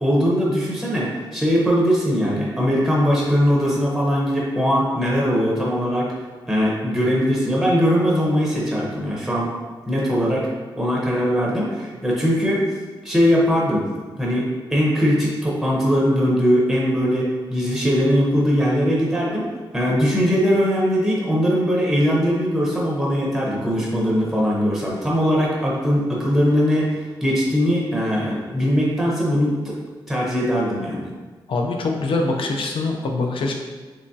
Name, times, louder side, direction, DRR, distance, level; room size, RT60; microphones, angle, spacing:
voice 1, 0.0-6.1 6.5-9.5 9.8-10.5 10.8-12.7 13.0-13.8 14.2-19.5 19.7-29.8 30.1-31.1, equal, ahead, -5 dB, 0.7 m, -20 dB
voice 2, 31.5-33.5, left 3 dB, 80° left, 2 dB, 0.5 m, -23 dB
3.5 x 3.1 x 2.6 m, 1.4 s
wide cardioid pair, 155°, 9 cm